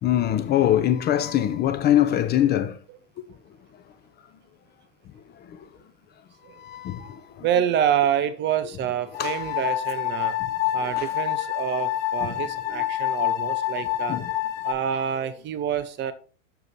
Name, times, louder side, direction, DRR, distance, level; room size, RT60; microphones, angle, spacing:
voice 1, 0.0-2.8 5.5-5.6 6.6-7.5 9.2-9.6 10.8-11.1 12.2-12.4 14.1-14.3, left 11 dB, 25° left, 0.6 m, -23 dB
voice 2, 7.4-10.3 10.7-14.2 14.6-16.1, right 9 dB, 30° right, 0.6 m, -27 dB
sound 1, 9.1-14.7, left 14 dB, 55° left, 2.0 m, -27 dB
6.9 x 6.6 x 4.2 m
supercardioid pair, 130°, 39 cm